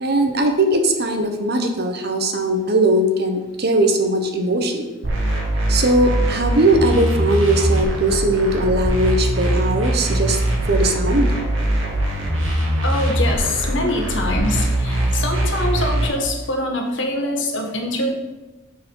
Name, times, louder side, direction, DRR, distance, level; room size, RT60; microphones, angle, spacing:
voice 1, 0.0-4.8 5.7-10.4 10.7-11.3, right 1 dB, 50° right, 5 dB, 0.9 m, -19 dB
sound 1, 5.0-16.1, right 1 dB, 75° right, 1.9 m, -21 dB
voice 2, 12.8-18.1, left 1 dB, 65° left, 2 dB, 1.4 m, -24 dB
6.6 x 5.8 x 5.4 m, 1.1 s
head